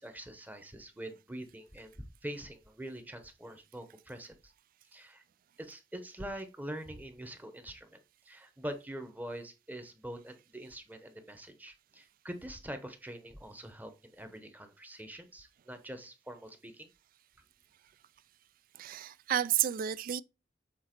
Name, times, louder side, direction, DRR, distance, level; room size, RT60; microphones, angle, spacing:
voice 1, 0.0-4.5 4.9-5.2 5.6-16.9, right 1 dB, 10° right, 0.9 m, -44 dB
voice 2, 18.7-20.2, right 11 dB, 50° right, 0.3 m, -31 dB
7.4 x 4.0 x 4.4 m
head